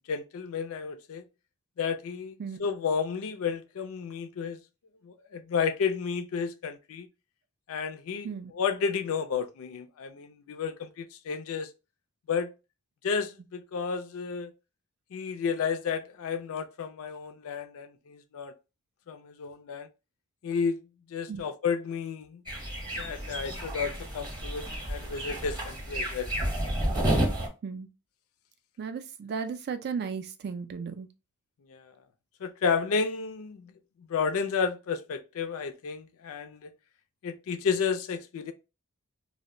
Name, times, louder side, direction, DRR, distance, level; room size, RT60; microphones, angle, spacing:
voice 1, 0.1-1.2 1.8-2.3 2.6-4.6 5.0-7.1 7.7-8.3 8.5-11.7 12.3-12.5 13.0-14.5 15.1-18.5 19.1-19.9 20.4-20.8 21.1-22.4 23.0-26.3 31.7-31.9 32.4-33.7 34.1-36.7 37.2-38.5, left 6 dB, 65° left, 0.4 m, -32 dB
sound 1, 22.5-27.5, right 1 dB, 20° right, 0.8 m, -31 dB
voice 2, 28.8-31.1, right 6 dB, 45° right, 0.3 m, -35 dB
2.1 x 2.1 x 3.6 m
head